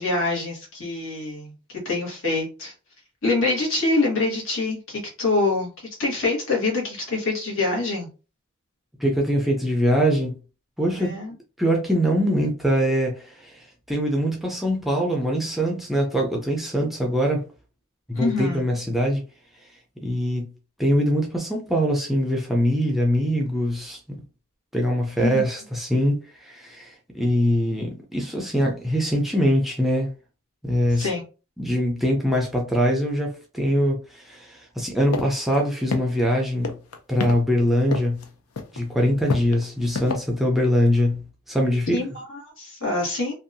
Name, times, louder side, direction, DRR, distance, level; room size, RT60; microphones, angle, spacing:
voice 1, 0.0-1.5 1.8-2.7 3.2-5.7 6.0-8.1 10.9-11.3 18.1-18.6 25.2-25.3 31.0-31.2 41.9-43.3, left 3 dB, 65° left, 1.2 m, -25 dB
voice 2, 9.0-10.4 10.8-11.2 11.6-17.4 18.1-19.2 20.0-20.5 20.8-24.2 24.7-30.1 30.6-31.1 31.6-36.7 37.1-38.2 38.7-42.0, equal, ahead, 0.4 m, -23 dB
sound 1, 35.1-35.3 35.5-35.6 35.9-36.3 36.6-37.3 37.9-38.3 38.6-38.8 39.3-40.1, left 4 dB, 85° left, 0.5 m, -26 dB
2.6 x 2.3 x 2.6 m
head